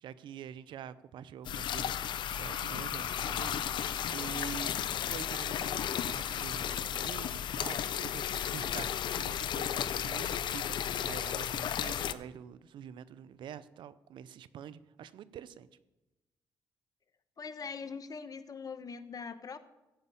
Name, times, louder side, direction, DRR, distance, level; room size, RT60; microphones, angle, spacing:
voice 1, 0.0-3.7 4.1-4.7 5.1-15.7, right 8 dB, 75° right, 16 dB, 0.6 m, -46 dB
sound 1, 1.4-12.1, left 9 dB, 70° left, 0.6 m, -34 dB
voice 2, 17.4-19.6, left 5 dB, 50° left, 12 dB, 1.1 m, -42 dB
14.5 x 5.4 x 8.4 m, 1.0 s
supercardioid pair, 60°, 8 cm